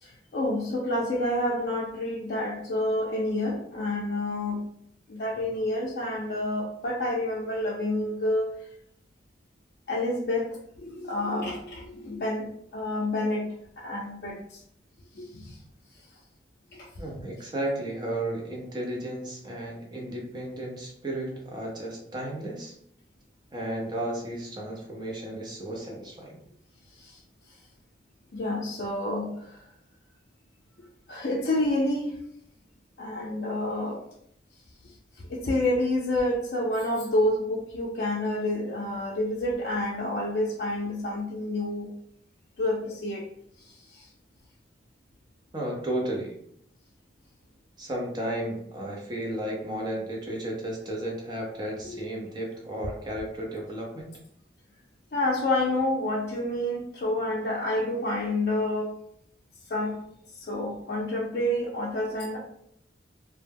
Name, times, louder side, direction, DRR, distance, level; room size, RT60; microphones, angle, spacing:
voice 1, 0.0-4.6 5.1-8.5 9.9-14.6 15.1-15.6 16.7-16.9 27.0-27.2 28.3-29.6 31.1-32.2 33.0-34.0 34.8-41.9 42.6-43.3 43.6-44.1 51.8-52.0 55.1-59.0 59.7-60.0 60.3-62.4, left 1 dB, 55° left, -4 dB, 0.4 m, -29 dB
voice 2, 17.0-22.7 23.5-26.4 45.5-46.4 47.8-54.1, right 1 dB, 25° right, -2 dB, 0.6 m, -33 dB
2.2 x 2.1 x 3.3 m, 0.72 s
head